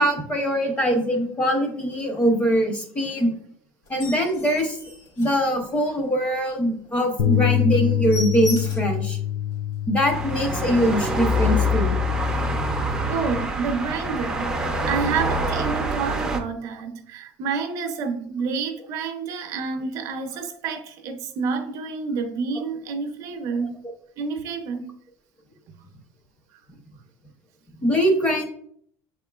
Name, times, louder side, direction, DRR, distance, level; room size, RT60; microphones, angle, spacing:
voice 1, 0.0-3.3 3.9-4.8 5.2-9.2 9.9-11.9 27.8-28.4, equal, 20° left, 0.8 m, -22 dB
sound 1, 3.8-6.0 6.4-6.5 6.9-7.0 7.3-7.4 7.7-9.0 9.5-9.6 10.0-10.1 10.3-10.8 11.5-11.7, left 3 dB, 60° left, 1.8 m, -38 dB
sound 2, 7.2-13.4, left 11 dB, 80° left, 0.4 m, -26 dB
sound 3, 10.1-16.4, left 1 dB, 10° right, 0.5 m, -25 dB
voice 2, 13.1-23.7 24.2-24.9, right 5 dB, 50° right, 0.7 m, -29 dB
6.2 x 3.7 x 2.3 m
cardioid pair, 160°, 7 cm